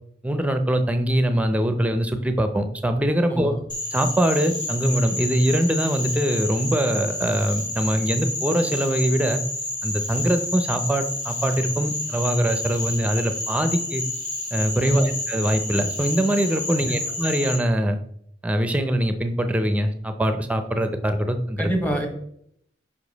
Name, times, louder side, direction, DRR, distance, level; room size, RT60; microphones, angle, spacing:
voice 1, 0.2-3.5 3.9-9.4 9.8-14.0 14.5-18.0 18.4-21.7, right 1 dB, 10° right, 8 dB, 0.6 m, -23 dB
voice 2, 3.3-3.6 14.8-15.2 16.8-17.0 21.6-22.1, right 1 dB, 10° left, 4 dB, 1.1 m, -25 dB
Frog, 3.7-17.6, left 2 dB, 70° left, 1.9 m, -30 dB
5.5 x 5.1 x 4.0 m, 0.68 s
head